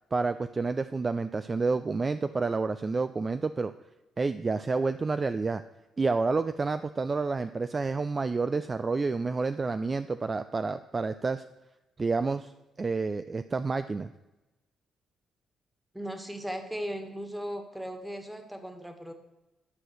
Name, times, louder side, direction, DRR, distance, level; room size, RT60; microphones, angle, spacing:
voice 1, 0.1-3.7 4.2-5.6 6.0-11.4 12.0-12.5 12.8-14.1, right 4 dB, 30° right, 11 dB, 0.4 m, -29 dB
voice 2, 15.9-19.1, equal, 5° right, 6 dB, 1.7 m, -37 dB
11.0 x 4.9 x 7.7 m, 1.0 s
cardioid pair, 90°, 0 cm